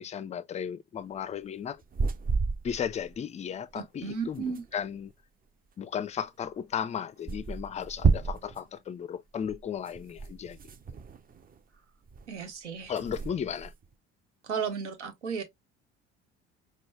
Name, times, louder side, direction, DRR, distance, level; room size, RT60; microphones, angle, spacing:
voice 1, 0.0-1.8 2.6-4.4 4.7-5.1 5.8-10.6 12.9-13.7, left 8 dB, 20° left, 0.4 m, -35 dB
sound 1, 1.7-3.2 3.4-3.5 3.7-3.8 4.0-5.1 6.1-6.2 6.5-6.6 7.3-8.7 9.4-11.8 12.0-12.4 12.8-13.9, right 4 dB, 25° right, 0.6 m, -32 dB
voice 2, 3.7-4.6 12.3-12.9 14.4-15.4, right 6 dB, 80° right, 1.0 m, -34 dB
5.3 x 2.1 x 3.0 m
figure-of-eight pair, 55°, 34 cm